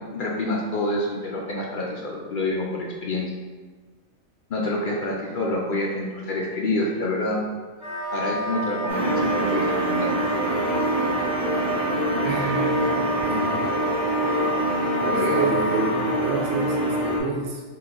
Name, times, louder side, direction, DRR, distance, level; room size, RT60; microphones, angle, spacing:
voice 1, 0.1-3.3 4.5-7.4 8.1-10.1 15.1-15.6, left 2 dB, 65° left, -2 dB, 0.5 m, -27 dB
Wind instrument woodwind instrument, 7.8-16.1, right 2 dB, 5° right, 1.2 m, -30 dB
sound 1, 8.9-17.2, right 1 dB, 45° right, 1.1 m, -25 dB
voice 2, 12.2-12.9 13.2-13.5 14.9-17.6, right 4 dB, 75° right, 0 dB, 1.1 m, -29 dB
3.7 x 2.4 x 3.7 m, 1.4 s
omnidirectional pair, 1.4 m